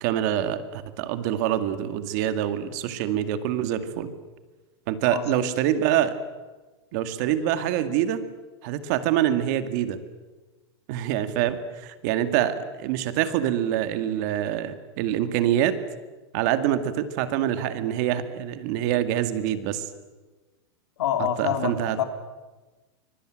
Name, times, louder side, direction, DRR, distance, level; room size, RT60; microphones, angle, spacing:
voice 1, 0.0-4.1 4.9-6.2 6.9-8.2 8.6-10.0 10.9-15.8 16.3-19.9 21.4-22.0, right 11 dB, 40° right, 10 dB, 2.1 m, -25 dB
voice 2, 5.1-5.6 21.0-22.0, left 9 dB, 80° left, 6 dB, 3.5 m, -27 dB
24.5 x 23.5 x 9.1 m, 1.2 s
supercardioid pair, 170°, 14 cm